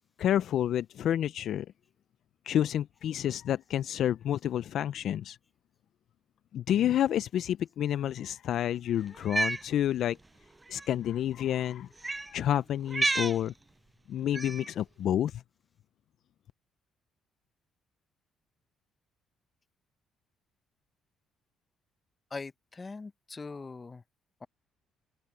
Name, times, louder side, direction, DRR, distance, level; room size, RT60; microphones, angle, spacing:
voice 1, 0.2-1.7 2.5-5.4 6.5-10.2 10.7-13.5 14.1-15.4, left 11 dB, 70° left, 0.5 m, -29 dB
Cat, 9.2-9.6 10.7-10.9 12.0-12.3 12.9-13.4 14.3-14.7, right 2 dB, 20° right, 0.4 m, -30 dB
voice 2, 22.3-24.0 24.4-24.5, left 4 dB, 30° left, 0.8 m, -41 dB
open air
supercardioid pair, 60°, 0 cm